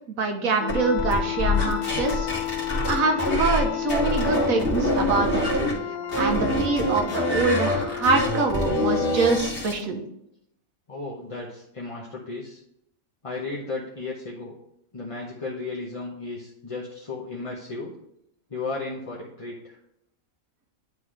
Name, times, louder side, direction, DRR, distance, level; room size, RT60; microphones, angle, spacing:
voice 1, 0.1-2.3 2.9-5.5 6.2-10.0, right 3 dB, 85° right, 4 dB, 1.4 m, -25 dB
sound 1, 0.6-9.4, left 9 dB, 85° left, 1.1 m, -32 dB
sound 2, 0.7-3.6 3.9-5.7 6.1-9.8, left 1 dB, 45° left, 1.8 m, -25 dB
voice 2, 10.9-12.6 13.2-14.5 14.9-17.9 18.5-19.8, left 3 dB, 30° left, -4 dB, 0.9 m, -34 dB
10.5 x 3.8 x 3.2 m, 0.78 s
omnidirectional pair, 1.4 m